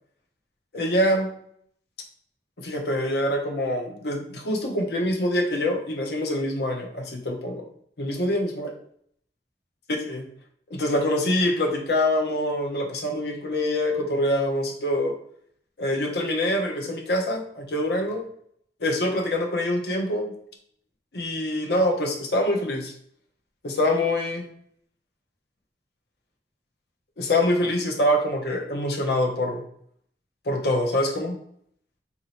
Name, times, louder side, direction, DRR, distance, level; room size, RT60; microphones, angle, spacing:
voice 1, 0.7-1.3 2.6-7.7 8.0-8.7 9.9-10.3 10.7-15.1 15.8-18.2 18.8-20.3 21.1-22.9 23.6-24.5 27.2-29.6 30.5-31.4, left 1 dB, 65° left, 2 dB, 0.7 m, -25 dB
3.0 x 2.7 x 4.2 m, 0.65 s
head